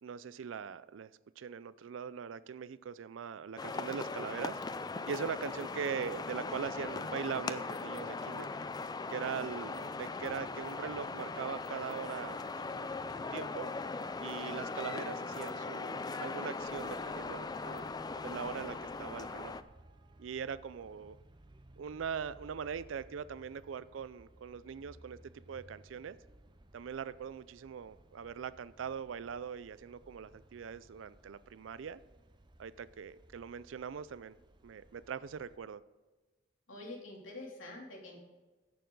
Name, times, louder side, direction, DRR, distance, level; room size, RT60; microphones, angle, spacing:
voice 1, 0.0-4.6 5.1-8.5 9.1-12.4 12.7-12.9 13.3-13.7 14.2-18.0 18.2-19.6 20.2-21.2 21.8-25.2 25.5-26.2 26.7-32.0 32.6-34.4 34.6-35.8, right 6 dB, 75° right, 0.4 m, -41 dB
sound 1, 3.6-19.6, left 3 dB, 20° left, 0.4 m, -39 dB
voice 2, 9.3-9.9 36.7-38.2, left 2 dB, 85° left, 3.0 m, -47 dB
Traffic noise roadway noise, 16.6-35.6, right 1 dB, 25° right, 0.7 m, -60 dB
15.5 x 6.8 x 3.9 m
head